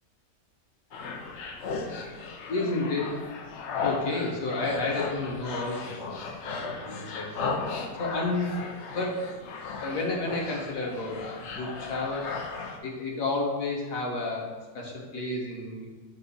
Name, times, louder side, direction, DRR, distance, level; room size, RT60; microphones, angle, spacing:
sound 1, 0.9-12.8, left 4 dB, 75° left, 0.6 m, -36 dB
voice 1, 2.5-3.1 3.8-7.5 8.0-8.5 8.9-9.3 9.8-12.3 12.8-15.9, left 2 dB, 55° left, -2 dB, 1.4 m, -31 dB
7.0 x 2.6 x 5.4 m, 1.3 s
omnidirectional pair, 1.9 m